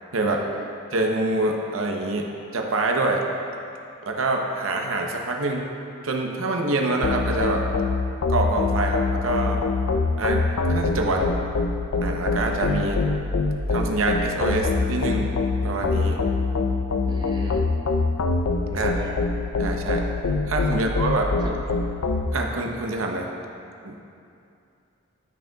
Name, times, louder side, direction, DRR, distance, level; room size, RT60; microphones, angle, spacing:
voice 1, 0.3-0.7 17.1-17.7 18.7-19.2 20.7-20.9 21.4-21.6, right 1 dB, 20° right, -1 dB, 0.5 m, -38 dB
voice 2, 0.9-2.3 2.5-3.2 4.0-5.7 6.0-7.6 8.3-9.6 10.2-10.4 10.7-11.3 12.0-13.0 13.7-15.3 15.6-16.2 18.7-18.9 19.6-20.0 20.4-21.3 22.3-23.3 23.8-24.1, right 2 dB, 80° right, 1 dB, 0.8 m, -25 dB
sound 1, 7.0-22.3, left 3 dB, 85° left, 0.5 m, -24 dB
12.5 x 6.4 x 2.3 m, 2.6 s
head